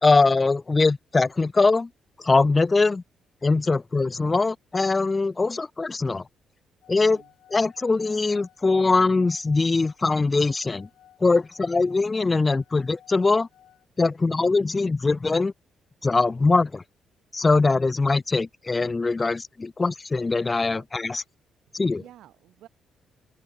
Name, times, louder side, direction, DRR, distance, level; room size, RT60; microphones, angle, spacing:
voice 1, 0.0-1.9 2.2-3.0 3.4-6.2 6.9-7.2 7.5-10.9 11.2-13.5 14.0-15.5 16.0-16.8 17.3-21.2 21.7-22.0, left 3 dB, 25° left, 0.3 m, -22 dB
sound 1, 6.8-13.8, left 11 dB, 75° left, 6.6 m, -56 dB
voice 2, 7.0-7.3 19.2-19.4 20.7-20.9 22.0-22.7, right 13 dB, 80° right, 4.6 m, -51 dB
open air
cardioid pair, 90°, 0 cm